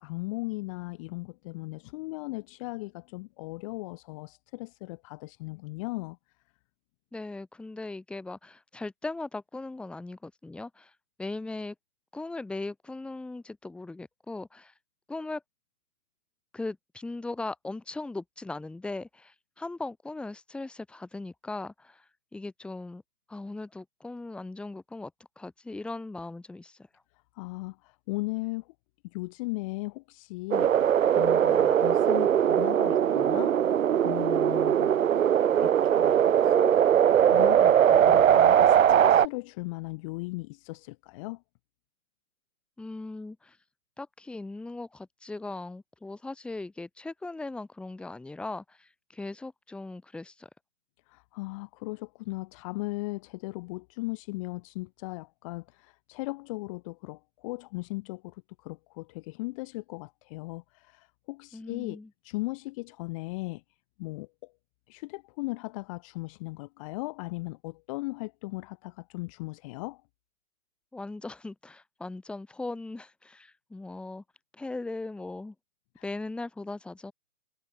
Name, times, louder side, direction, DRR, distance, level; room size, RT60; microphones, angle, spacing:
voice 1, 0.0-6.2 27.3-28.7 29.1-30.8 31.2-33.7 34.0-34.9 35.6-36.2 36.4-36.8 37.2-41.4 51.1-63.6 64.0-64.5 64.9-70.0 76.0-76.1, left 24 dB, 20° left, 2.7 m, -37 dB
voice 2, 7.1-10.9 11.2-11.7 12.1-14.7 15.1-15.4 16.5-22.0 22.3-23.0 23.3-25.1 25.4-26.8 42.8-43.6 44.0-50.5 61.5-62.1 70.9-74.2 74.5-75.5 76.0-77.1, left 2 dB, ahead, 2.9 m, -39 dB
sound 1, 30.5-39.3, right 9 dB, 60° right, 0.9 m, -21 dB
hypercardioid pair, 165°, 44 cm